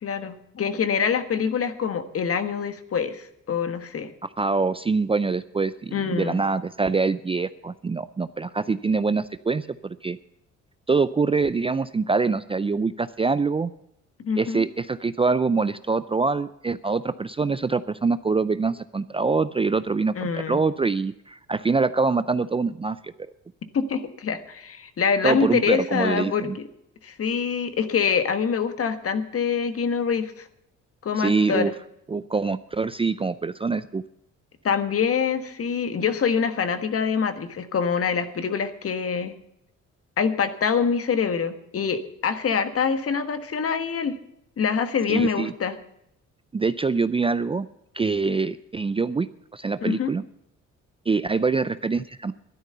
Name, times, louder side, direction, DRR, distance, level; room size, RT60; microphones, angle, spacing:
voice 1, 0.0-4.1 5.9-6.4 14.2-14.6 20.2-20.6 23.7-26.7 27.0-30.5 31.0-31.7 34.6-39.3 40.2-44.1 44.6-45.8 49.8-50.1, left 6 dB, 50° left, 10 dB, 1.4 m, -25 dB
voice 2, 4.4-10.2 10.9-13.7 14.4-23.1 25.2-26.6 31.2-31.7 32.1-34.0 45.1-45.5 46.5-47.7 47.9-50.2 51.1-52.3, right 4 dB, 20° right, 14 dB, 0.4 m, -24 dB
12.5 x 10.5 x 6.7 m, 0.79 s
cardioid pair, 90°, 30 cm